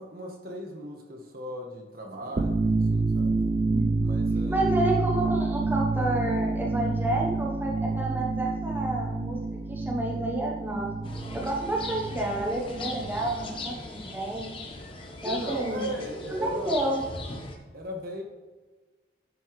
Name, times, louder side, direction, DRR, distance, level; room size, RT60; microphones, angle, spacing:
voice 1, 0.0-3.4 4.0-4.7 15.2-16.8 17.7-18.2, equal, 55° right, 2 dB, 1.2 m, -37 dB
sound 1, 2.3-13.8, right 3 dB, 35° right, 0.4 m, -28 dB
voice 2, 3.7-4.1 4.5-9.4 9.7-11.0 11.3-14.6 15.2-15.9 16.3-17.1, right 1 dB, 10° right, -2 dB, 0.9 m, -30 dB
sound 2, 11.0-17.6, left 2 dB, 30° left, 0.9 m, -40 dB
10.5 x 5.6 x 3.1 m, 1.3 s
head